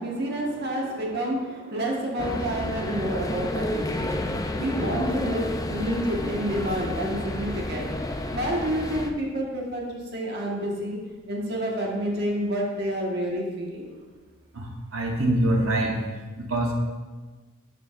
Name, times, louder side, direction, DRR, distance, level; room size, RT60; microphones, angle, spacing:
voice 1, 0.0-4.2 4.5-7.9 8.3-11.0 11.3-13.9, right 1 dB, 50° right, -2 dB, 1.5 m, -29 dB
sound 1, 2.2-9.1, left 1 dB, 15° left, 0.4 m, -30 dB
voice 2, 14.5-16.0 16.4-16.8, right 1 dB, 80° right, 1 dB, 1.1 m, -24 dB
12.0 x 7.2 x 2.5 m, 1.3 s
head